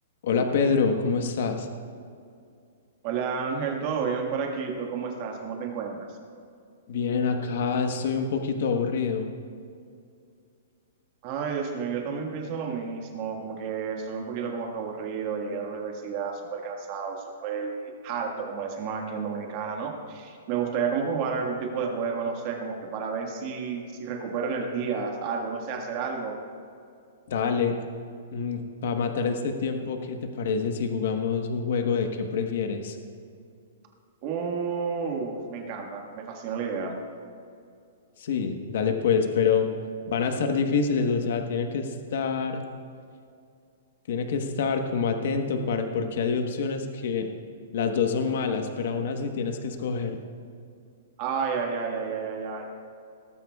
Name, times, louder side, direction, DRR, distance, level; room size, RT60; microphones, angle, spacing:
voice 1, 0.2-1.7 6.9-9.3 27.3-27.7 28.3-33.0 38.2-39.7 40.1-42.6 44.1-47.3 47.7-50.2, left 5 dB, 55° left, 5 dB, 1.1 m, -26 dB
voice 2, 3.0-6.0 11.2-26.4 34.2-36.9 51.2-52.6, right 5 dB, 30° right, 2 dB, 1.6 m, -31 dB
18.0 x 14.5 x 2.3 m, 2.3 s
hypercardioid pair, 170°, 0 cm